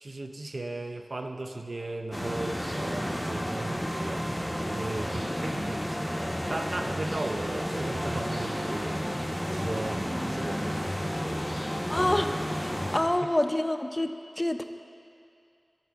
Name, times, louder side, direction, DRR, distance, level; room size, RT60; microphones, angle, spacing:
voice 1, 0.0-4.3 4.6-9.1 9.5-11.7, right 2 dB, 70° right, 5 dB, 0.4 m, -37 dB
sound 1, 2.1-13.0, equal, 5° left, 0.8 m, -31 dB
voice 2, 11.9-12.3 12.6-14.1 14.4-14.6, left 1 dB, 25° left, 8 dB, 0.3 m, -27 dB
14.0 x 5.3 x 2.3 m, 2.4 s
wide cardioid pair, 55°, 0 cm